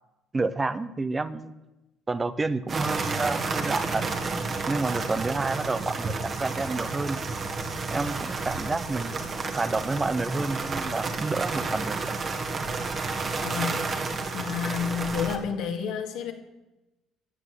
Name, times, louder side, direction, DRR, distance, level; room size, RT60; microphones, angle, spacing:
voice 1, 0.3-1.6 2.1-4.0 4.7-7.2 7.9-12.1, right 3 dB, 25° right, 13 dB, 0.9 m, -29 dB
sound 1, 2.7-15.4, right 4 dB, 40° right, 2.2 m, -31 dB
voice 2, 13.4-13.9 14.3-16.3, left 7 dB, 75° left, 3 dB, 2.3 m, -30 dB
15.0 x 8.0 x 8.4 m, 1.0 s
supercardioid pair, 75°, 0 cm